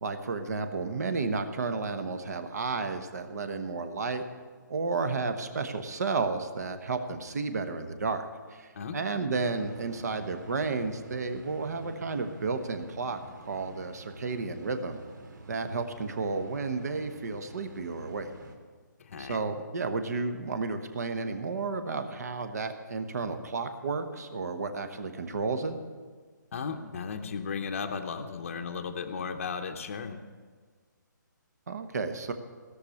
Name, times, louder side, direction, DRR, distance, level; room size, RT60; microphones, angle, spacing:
voice 1, 0.0-4.2 4.7-8.2 8.5-15.0 15.5-18.3 19.2-25.8 31.7-32.3, right 4 dB, 55° right, 8 dB, 1.2 m, -32 dB
sound 1, 9.3-18.5, right 1 dB, 80° right, 2.7 m, -48 dB
voice 2, 19.0-19.4 26.5-30.2, left 5 dB, 40° left, 5 dB, 0.8 m, -35 dB
17.0 x 6.6 x 8.5 m, 1.5 s
hypercardioid pair, 170°, 11 cm